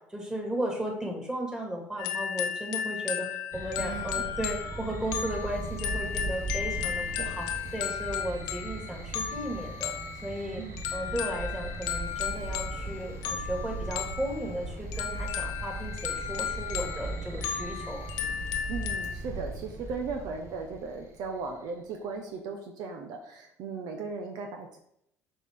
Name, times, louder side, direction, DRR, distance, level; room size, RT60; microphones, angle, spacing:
voice 1, 0.1-7.5 7.7-9.9 10.2-10.6 10.9-18.3, right 1 dB, 10° right, 0 dB, 2.4 m, -35 dB
sound 1, 2.0-19.1, left 9 dB, 80° left, 0.8 m, -35 dB
sound 2, 3.5-21.5, right 2 dB, 40° right, 1.3 m, -38 dB
voice 2, 3.8-4.2 7.2-7.3 10.6-10.8 18.7-24.8, right 4 dB, 70° right, 3 dB, 0.9 m, -37 dB
7.0 x 4.4 x 3.7 m, 0.75 s
supercardioid pair, 80°, 7 cm